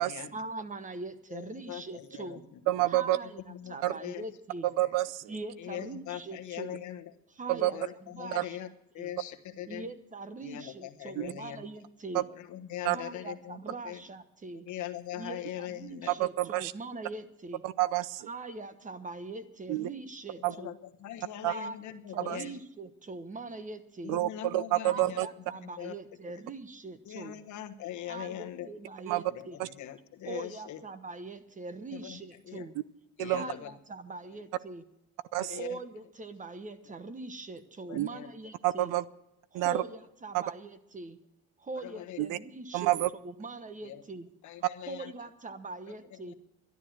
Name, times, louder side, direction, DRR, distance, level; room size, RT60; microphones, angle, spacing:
voice 1, 0.3-2.4 2.9-3.4 3.7-4.7 5.3-6.8 7.3-8.7 9.0-9.1 9.6-12.3 12.8-14.7 15.1-17.6 18.3-20.7 21.4-24.2 24.8-27.4 28.0-29.6 30.2-32.7 33.2-34.8 35.5-38.9 39.5-41.2 41.6-43.0 43.2-44.3 44.9-46.3, right 3 dB, 25° right, 12 dB, 1.1 m, -42 dB
voice 2, 1.3-2.4 3.5-3.7 4.0-4.2 5.6-7.0 7.7-8.7 8.9-9.9 10.4-11.6 12.5-13.6 13.8-14.0 14.7-16.1 20.5-20.7 21.0-22.5 24.0-25.2 25.8-25.9 27.1-28.7 29.3-30.8 31.9-32.2 32.5-32.6 33.2-33.7 35.4-35.8 37.9-38.3 41.8-42.2 43.8-44.0 44.4-45.1, left 12 dB, 65° left, 5 dB, 1.2 m, -41 dB
voice 3, 2.7-3.2 3.8-3.9 4.8-5.3 7.5-7.7 8.3-8.4 11.2-11.3 12.1-12.2 12.8-13.0 16.2-16.7 17.6-18.3 19.7-19.9 20.4-20.5 21.4-21.5 22.3-22.4 24.1-25.3 29.1-29.2 29.6-29.7 33.2-33.4 35.3-35.6 37.9-38.1 38.6-39.0 39.5-39.8 40.3-40.4 42.2-42.4 42.7-43.1, right 16 dB, 85° right, 19 dB, 0.6 m, -28 dB
12.0 x 11.0 x 7.5 m, 0.83 s
cardioid pair, 100°, 31 cm